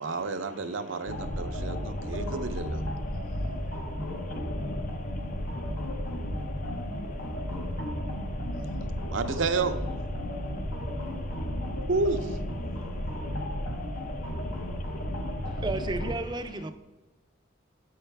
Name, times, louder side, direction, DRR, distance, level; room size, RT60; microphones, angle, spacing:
voice 1, 0.0-2.8 9.1-9.8 11.9-12.3, right 3 dB, 70° right, 0.6 m, -30 dB
sound 1, 1.1-16.1, equal, 80° left, 1.0 m, -33 dB
voice 2, 1.3-2.3 2.9-4.9 5.4-5.5 6.0-9.2 10.2-11.9 12.6-15.6, left 3 dB, 40° left, 0.5 m, -52 dB
voice 3, 15.4-16.7, right 3 dB, 20° right, 0.4 m, -33 dB
7.9 x 5.6 x 3.4 m
head